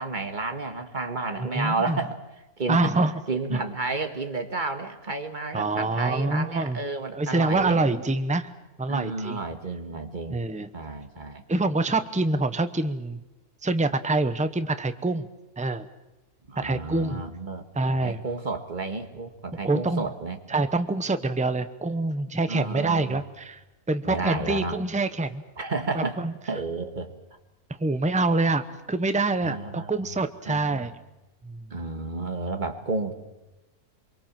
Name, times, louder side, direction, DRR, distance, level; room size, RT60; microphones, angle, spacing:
voice 1, 0.0-2.2 2.6-2.9 3.3-7.8 8.9-10.4 10.7-11.4 16.5-17.6 17.9-20.4 22.5-23.2 24.0-24.8 25.6-26.2 26.4-27.1 29.4-30.1 30.5-30.9 31.7-33.1, right 3 dB, 30° right, 6 dB, 1.9 m, -31 dB
voice 2, 1.4-2.0 2.7-3.1 3.5-3.6 5.5-6.8 7.1-8.5 8.8-9.4 10.3-10.7 11.5-13.2 13.6-15.3 15.6-15.9 16.6-17.2 17.7-18.2 19.6-20.0 20.5-23.6 23.9-25.4 25.9-26.3 27.8-30.9 31.4-31.7, right 2 dB, 5° right, 10 dB, 0.7 m, -26 dB
24.0 x 23.5 x 7.5 m, 1.0 s
omnidirectional pair, 1.5 m